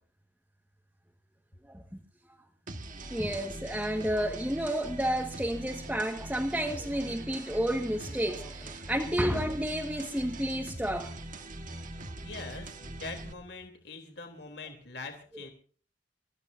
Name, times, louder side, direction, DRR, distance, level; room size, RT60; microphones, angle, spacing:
sound 1, 2.7-13.3, right 2 dB, 50° right, 1.7 m, -42 dB
voice 1, 3.1-11.1, equal, 5° right, 1 dB, 1.6 m, -31 dB
voice 2, 12.2-15.5, left 3 dB, 70° left, 4 dB, 3.4 m, -43 dB
28.5 x 15.0 x 2.7 m, 0.42 s
head